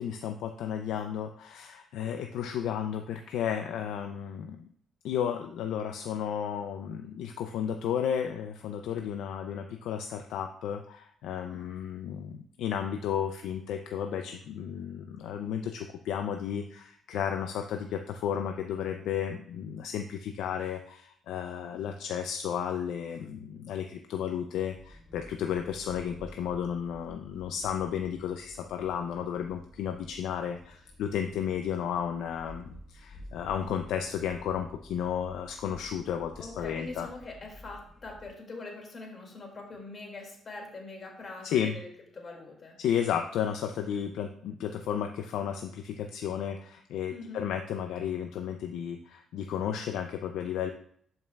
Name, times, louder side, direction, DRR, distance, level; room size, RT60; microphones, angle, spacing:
voice 1, 0.0-4.7 5.0-37.1 41.4-41.8 42.8-50.7, left 8 dB, 85° left, 5 dB, 0.4 m, -33 dB
voice 2, 11.3-11.7 36.4-41.9 42.1-42.8 47.1-47.4, left 2 dB, 45° left, 1 dB, 2.3 m, -43 dB
sound 1, 24.7-38.3, left 1 dB, 25° left, 1.0 m, -51 dB
11.0 x 5.4 x 2.3 m, 0.63 s
cardioid pair, 90°, 0 cm